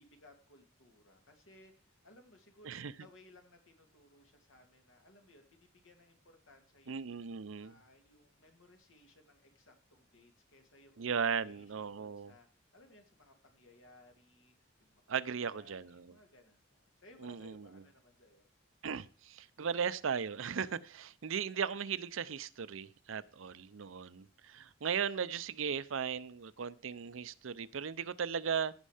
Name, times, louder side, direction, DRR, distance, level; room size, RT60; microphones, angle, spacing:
voice 1, 0.0-7.3 7.6-11.0 11.4-14.5 14.8-15.0 15.4-18.5, left 1 dB, 80° left, 4 dB, 2.4 m, -62 dB
voice 2, 6.9-7.8 11.0-12.3 15.1-16.0 17.2-17.7 18.8-28.7, right 6 dB, 80° right, 16 dB, 0.6 m, -37 dB
15.5 x 5.5 x 5.0 m, 0.38 s
head